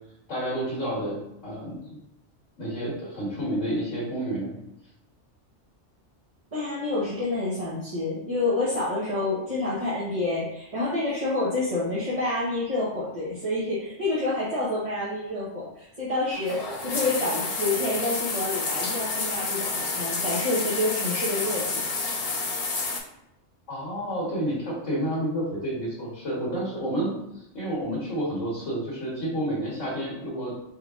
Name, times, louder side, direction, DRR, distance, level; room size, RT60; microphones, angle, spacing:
voice 1, 0.3-2.0 2.6-4.6 23.7-30.5, right 1 dB, 80° left, -8 dB, 1.7 m, -30 dB
voice 2, 6.5-21.8, left 2 dB, 30° right, -8 dB, 0.9 m, -28 dB
sound 1, 16.3-23.0, left 3 dB, 45° left, 0.5 m, -29 dB
4.5 x 3.5 x 2.4 m, 0.84 s
omnidirectional pair, 1.3 m